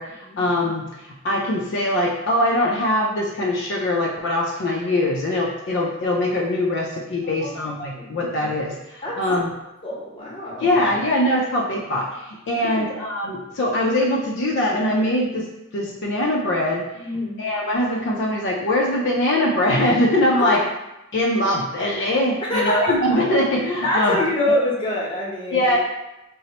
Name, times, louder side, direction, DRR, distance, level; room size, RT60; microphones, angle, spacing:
voice 1, 0.0-9.5 10.6-16.9 17.4-20.6 21.1-24.2 25.5-25.8, left 1 dB, 60° left, -2 dB, 0.4 m, -22 dB
voice 2, 7.2-8.3 9.0-9.2 9.8-10.7 12.6-12.9 17.0-17.4 20.3-20.6 22.5-22.9 23.8-25.7, left 1 dB, 25° left, -5 dB, 0.8 m, -25 dB
2.9 x 2.0 x 4.0 m, 0.96 s
head